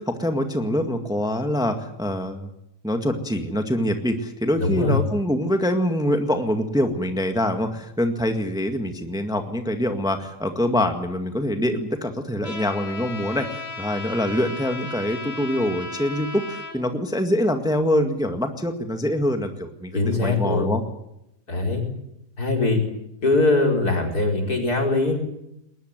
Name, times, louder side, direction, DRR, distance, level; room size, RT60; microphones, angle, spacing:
voice 1, 0.0-2.5 2.8-20.8, equal, ahead, 6 dB, 1.8 m, -24 dB
voice 2, 4.6-5.0 19.9-20.7 21.5-21.8 22.4-22.8 23.2-25.2, left 2 dB, 65° left, 2 dB, 5.4 m, -21 dB
Trumpet, 12.4-16.7, left 3 dB, 90° left, 5.3 m, -35 dB
21.0 x 19.5 x 9.1 m, 0.82 s
omnidirectional pair, 1.8 m